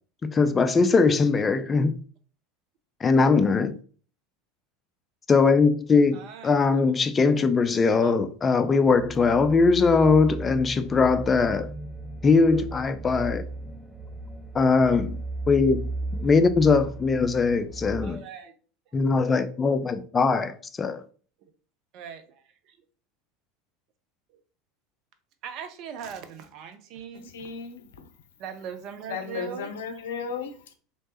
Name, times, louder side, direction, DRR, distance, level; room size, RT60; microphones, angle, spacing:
voice 1, 0.2-2.0 3.0-3.8 5.3-11.7 12.2-13.4 14.5-15.2 15.5-15.8 16.1-18.2 18.9-21.0, left 4 dB, 25° left, 0.4 m, -21 dB
voice 2, 6.1-6.6 7.9-8.2 18.0-18.6 21.9-22.8 25.4-27.5 28.4-30.0, right 7 dB, 55° right, 0.6 m, -40 dB
sound 1, 8.6-18.1, right 2 dB, 10° right, 0.8 m, -36 dB
voice 3, 27.2-28.1 29.1-30.7, left 6 dB, 75° left, 0.5 m, -35 dB
3.2 x 3.0 x 2.9 m
hypercardioid pair, 80°, 0 cm